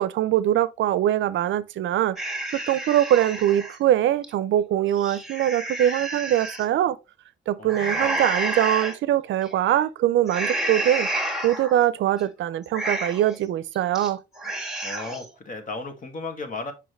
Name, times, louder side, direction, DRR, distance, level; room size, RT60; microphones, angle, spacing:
voice 1, 0.0-2.2 2.7-7.0 7.5-11.1 11.4-14.2, right 12 dB, 70° right, 0.5 m, -22 dB
sound 1, 2.2-3.8 4.2-4.3 4.8-6.6 7.7-9.0 9.4-9.8 10.3-11.8 12.2-12.3 12.6-13.4 13.7-14.1 14.4-15.3, right 1 dB, ahead, 1.8 m, -30 dB
voice 2, 7.6-8.3 14.8-16.7, left 3 dB, 40° left, 1.8 m, -35 dB
6.4 x 5.5 x 3.2 m
cardioid pair, 90°, 20 cm